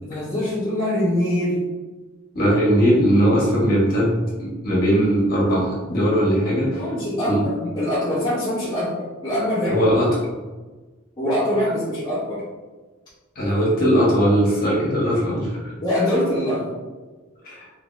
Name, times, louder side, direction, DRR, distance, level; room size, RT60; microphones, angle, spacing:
voice 1, 0.0-1.6 6.6-9.9 11.2-12.5 15.8-16.7, left 1 dB, 20° left, -11 dB, 0.9 m, -24 dB
voice 2, 2.3-6.8 7.3-7.4 9.7-10.1 13.3-15.7 17.4-17.6, equal, 45° left, -6 dB, 1.3 m, -19 dB
3.2 x 2.9 x 3.1 m, 1.3 s
head